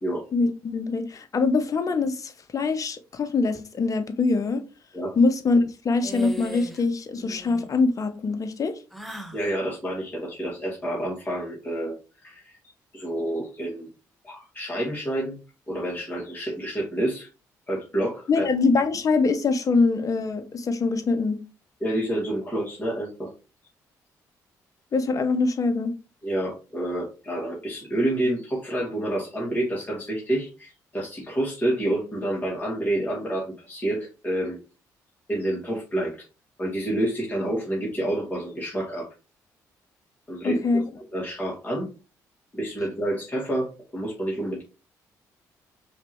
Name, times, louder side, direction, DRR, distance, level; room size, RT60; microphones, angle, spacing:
voice 1, 0.3-4.6 5.2-8.7 18.3-21.4 24.9-25.9 40.4-40.8, left 4 dB, 45° left, 0.8 m, -23 dB
sound 1, 6.0-6.8 7.1-7.7 8.9-9.4, right 2 dB, ahead, 1.1 m, -37 dB
voice 2, 9.3-11.9 12.2-13.9 14.2-15.3 15.7-17.3 17.7-18.4 21.8-23.3 26.2-34.6 35.3-36.3 36.6-39.1 40.3-40.8 41.1-41.9 42.5-44.6, right 1 dB, 25° left, 2.1 m, -28 dB
5.2 x 3.0 x 3.0 m
supercardioid pair, 55°, 8 cm